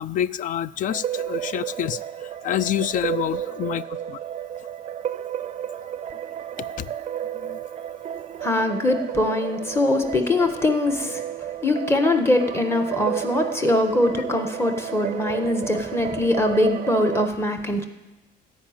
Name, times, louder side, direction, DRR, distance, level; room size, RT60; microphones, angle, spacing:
voice 1, 0.0-4.2 6.8-6.9 7.3-7.6, left 10 dB, 50° left, 19 dB, 0.4 m, -28 dB
sound 1, 0.9-17.3, right 10 dB, 40° right, 0.5 m, -32 dB
voice 2, 8.4-11.2 11.6-17.8, left 1 dB, 15° left, 5 dB, 1.4 m, -22 dB
14.5 x 5.1 x 8.9 m, 1.1 s
cardioid pair, 110°, 17 cm